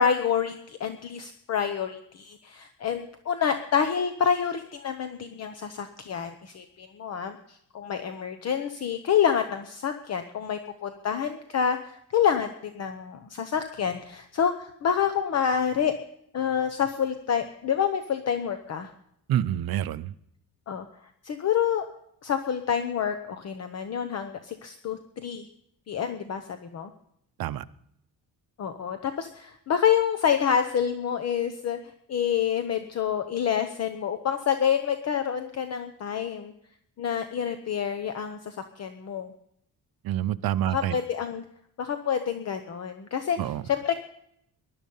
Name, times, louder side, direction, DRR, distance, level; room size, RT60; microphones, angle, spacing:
voice 1, 0.0-16.0 16.3-18.9 20.7-20.9 21.2-21.9 22.2-25.5 25.9-26.9 28.6-31.8 32.1-36.5 37.0-39.3 40.7-41.4 41.8-43.4 43.7-44.0, left 8 dB, 40° left, 8 dB, 0.9 m, -27 dB
voice 2, 19.3-20.1 27.4-27.6 40.0-41.0 43.4-43.6, right 12 dB, 65° right, 15 dB, 0.7 m, -27 dB
20.0 x 12.0 x 5.5 m, 0.73 s
cardioid pair, 180°, 39 cm